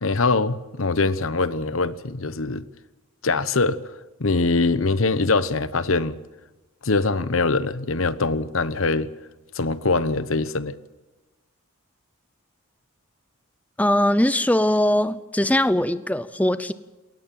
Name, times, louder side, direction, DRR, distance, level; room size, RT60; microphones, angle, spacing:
voice 1, 0.0-2.7 3.2-3.8 4.2-6.2 6.8-9.1 9.5-10.8, left 3 dB, 75° left, 14 dB, 1.0 m, -23 dB
voice 2, 13.8-16.7, left 1 dB, 5° left, 13 dB, 0.6 m, -21 dB
21.0 x 19.0 x 7.7 m, 1.1 s
head